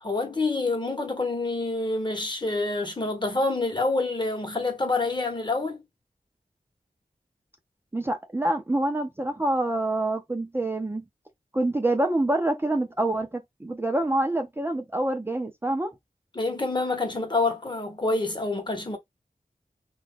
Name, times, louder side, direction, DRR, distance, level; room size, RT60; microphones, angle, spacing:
voice 1, 0.0-5.8 16.3-19.0, left 3 dB, 30° left, 1.0 m, -27 dB
voice 2, 7.9-11.0 11.5-15.9, right 1 dB, 15° right, 0.5 m, -26 dB
2.5 x 2.3 x 3.5 m
wide cardioid pair, 80°, 15 cm